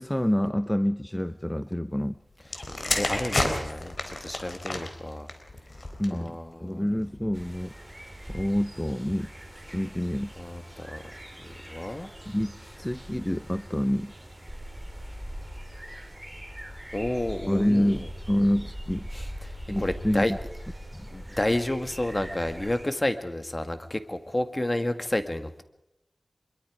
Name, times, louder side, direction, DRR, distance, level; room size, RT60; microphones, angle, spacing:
voice 1, 0.0-2.2 6.0-7.7 8.3-9.3 9.5-10.3 12.3-14.1 17.5-19.1 19.7-20.4 21.0-21.1, equal, 10° left, 12 dB, 0.7 m, -27 dB
sound 1, 2.4-6.3 7.1-7.3, left 2 dB, 55° left, 3.9 m, -31 dB
voice 2, 3.0-5.3 6.1-6.9 10.4-11.0 11.4-12.1 16.9-17.9 19.1-20.3 21.1-25.6, left 1 dB, 30° left, 9 dB, 1.9 m, -30 dB
sound 2, 7.3-22.9, equal, 15° right, 3.6 m, -42 dB
24.0 x 23.0 x 5.1 m, 0.87 s
wide cardioid pair, 50°, 0 cm